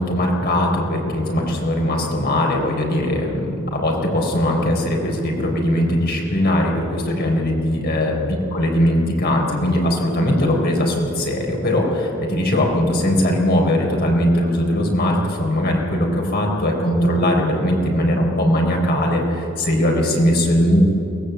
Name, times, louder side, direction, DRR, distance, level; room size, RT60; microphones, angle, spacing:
voice 1, 0.0-20.8, left 1 dB, 50° left, 0 dB, 4.1 m, -20 dB
22.5 x 19.0 x 8.1 m, 2.9 s
head